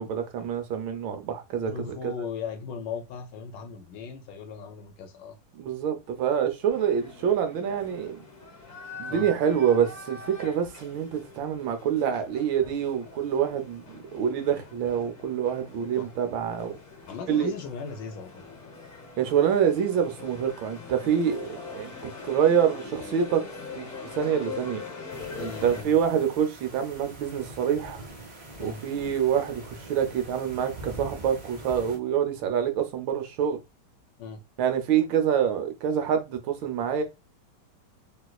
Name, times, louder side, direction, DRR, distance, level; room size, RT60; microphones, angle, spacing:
voice 1, 0.0-2.1 5.5-8.2 9.0-13.8 14.1-16.8 17.3-17.5 19.2-23.4 23.7-23.9 24.1-24.8 25.4-28.0 28.6-33.6 34.6-37.0, right 8 dB, 80° right, 1.4 m, -26 dB
voice 2, 1.7-5.4 9.1-9.3 17.1-18.4 25.4-26.0 28.6-28.8 34.2-34.4, left 6 dB, 75° left, 1.2 m, -37 dB
sound 1, 6.7-25.8, left 4 dB, 40° left, 0.9 m, -43 dB
sound 2, 25.1-32.0, right 1 dB, 60° right, 0.3 m, -43 dB
3.2 x 3.0 x 2.3 m
omnidirectional pair, 2.2 m